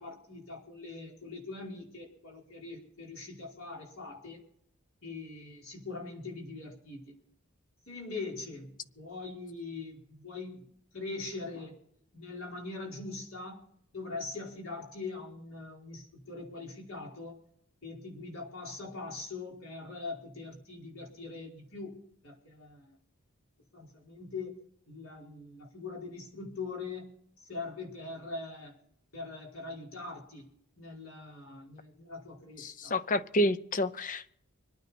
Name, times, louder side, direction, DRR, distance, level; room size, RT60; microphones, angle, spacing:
voice 1, 0.0-4.4 5.0-7.1 7.9-10.6 10.9-11.7 12.1-13.6 13.9-17.4 17.8-23.0 23.7-24.5 24.9-27.1 27.5-28.7 29.1-30.5 30.8-33.0, left 3 dB, 65° left, 4.9 m, -42 dB
voice 2, 32.6-34.3, left 1 dB, 35° left, 0.6 m, -29 dB
25.5 x 9.5 x 4.4 m
head